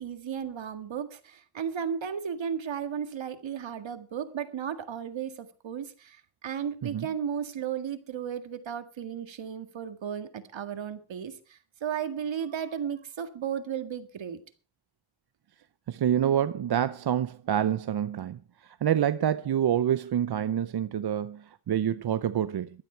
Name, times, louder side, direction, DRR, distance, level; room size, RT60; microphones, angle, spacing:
voice 1, 0.0-14.4, right 8 dB, 70° right, 1.9 m, -34 dB
voice 2, 15.9-22.7, right 10 dB, 55° right, 0.7 m, -27 dB
15.5 x 12.5 x 4.5 m
cardioid pair, 95°, 47 cm